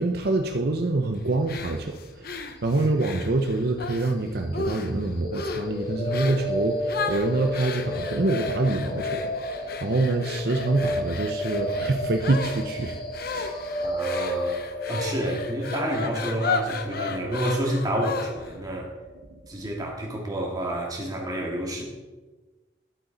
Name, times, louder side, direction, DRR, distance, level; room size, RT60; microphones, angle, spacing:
voice 1, 0.0-13.0 13.2-13.8 19.3-19.4, right 2 dB, 55° right, 4 dB, 0.7 m, -26 dB
sound 1, 1.5-4.1 4.5-5.0 5.3-5.7 6.1-6.5 6.9-18.6, left 4 dB, 55° left, 0.8 m, -34 dB
sound 2, 5.2-19.2, equal, 25° left, 1.0 m, -32 dB
voice 2, 13.8-14.6 14.9-18.9 19.5-21.8, right 1 dB, 20° right, -2 dB, 1.9 m, -29 dB
11.5 x 8.2 x 3.9 m, 1.2 s
head